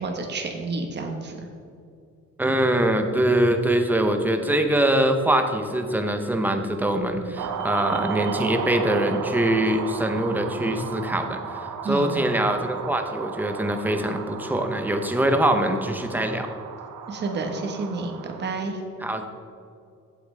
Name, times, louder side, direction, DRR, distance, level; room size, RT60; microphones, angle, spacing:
voice 1, 0.0-1.4 11.8-12.1 17.1-18.8, right 3 dB, 35° right, 3 dB, 1.2 m, -30 dB
voice 2, 2.4-16.5 19.0-19.3, right 1 dB, 5° right, 5 dB, 0.6 m, -23 dB
sound 1, 7.4-18.4, right 7 dB, 85° right, 0.9 m, -34 dB
15.0 x 8.1 x 3.3 m, 2.5 s
cardioid pair, 180°, 30 cm